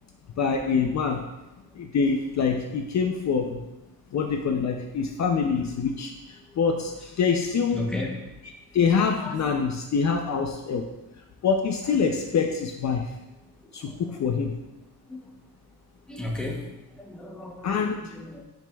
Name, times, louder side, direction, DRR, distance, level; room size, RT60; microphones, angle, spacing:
voice 1, 0.4-1.3 1.7-3.7 4.1-7.9 8.7-10.9 11.4-13.1 13.7-14.6 17.6-18.1, left 5 dB, 50° left, 3 dB, 0.5 m, -25 dB
voice 2, 7.7-8.1 9.2-9.4 13.6-14.0 15.1-15.3 16.1-16.7 16.9-17.7 18.0-18.4, left 1 dB, ahead, -1 dB, 0.9 m, -34 dB
10.5 x 5.1 x 2.3 m, 0.99 s
wide cardioid pair, 170°, 37 cm